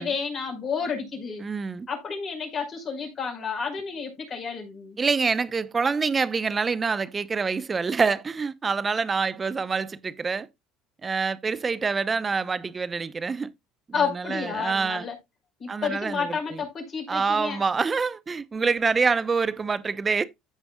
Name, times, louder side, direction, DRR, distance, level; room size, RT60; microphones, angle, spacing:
voice 1, 0.0-1.5 1.9-5.0 13.9-15.2 15.6-17.6, left 6 dB, 40° left, 5.4 m, -30 dB
voice 2, 1.4-1.9 5.0-10.5 11.0-13.5 14.0-15.1 15.7-16.6 17.1-20.2, right 5 dB, 30° right, 0.9 m, -26 dB
15.0 x 5.2 x 2.4 m
hypercardioid pair, 75°, 0 cm